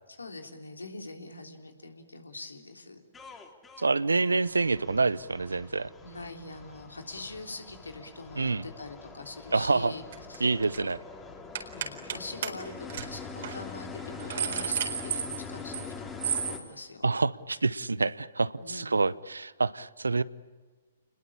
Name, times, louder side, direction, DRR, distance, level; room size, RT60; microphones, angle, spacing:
voice 1, 0.1-3.0 6.0-10.0 10.3-10.5 11.7-17.1 18.6-19.0, left 2 dB, 85° left, 4 dB, 3.5 m, -43 dB
sound 1, 3.1-16.6, left 5 dB, 15° left, 3.6 m, -44 dB
voice 2, 3.8-5.9 8.4-8.6 9.5-9.9 10.4-11.0 17.0-20.2, right 3 dB, 85° right, 19 dB, 0.8 m, -27 dB
sound 2, 10.1-10.4 10.6-10.9 11.5-12.2 12.4-12.5 12.9-13.1 13.4-13.6 14.0-15.9 16.2-16.6, right 8 dB, 60° right, 4.2 m, -32 dB
29.0 x 21.0 x 8.7 m, 1.4 s
figure-of-eight pair, 120°, 0 cm